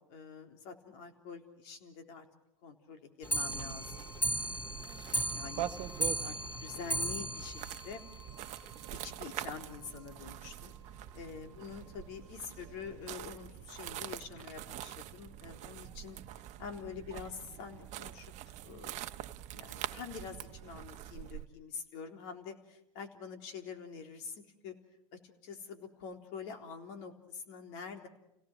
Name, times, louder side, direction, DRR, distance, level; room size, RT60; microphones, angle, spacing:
voice 1, 0.0-2.3 2.6-4.8 5.3-8.0 8.9-10.7 11.1-19.0 19.5-24.7 25.1-28.1, left 6 dB, 60° left, 5 dB, 3.7 m, -46 dB
Clock, 3.2-8.7 9.1-9.2 9.4-9.5 9.8-9.9 10.2-10.3 11.0-11.1 11.8-11.9 12.6-12.7, right 1 dB, 15° left, 5.0 m, -36 dB
sound 1, 3.5-21.5, right 12 dB, 45° right, 1.1 m, -45 dB
30.0 x 18.0 x 6.3 m, 0.84 s
hypercardioid pair, 105°, 17 cm